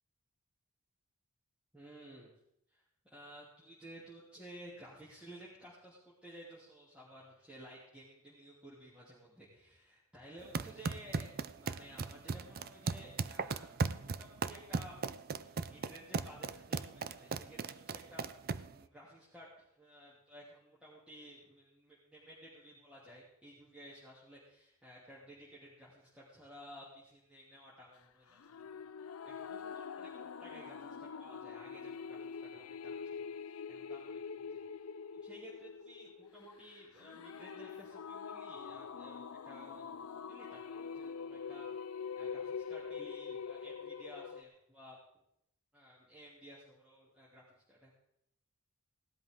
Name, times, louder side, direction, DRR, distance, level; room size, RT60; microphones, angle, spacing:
voice 1, 1.7-2.3 2.7-2.8 3.1-15.0 15.5-28.8 29.2-34.5 35.1-41.7 42.1-45.0 45.7-47.9, equal, 5° right, -8 dB, 3.0 m, -55 dB
sound 1, 10.4-18.8, right 4 dB, 45° right, 0.5 m, -38 dB
sound 2, 28.4-44.4, left 6 dB, 75° left, 0.5 m, -44 dB
17.5 x 12.5 x 3.8 m, 0.78 s
head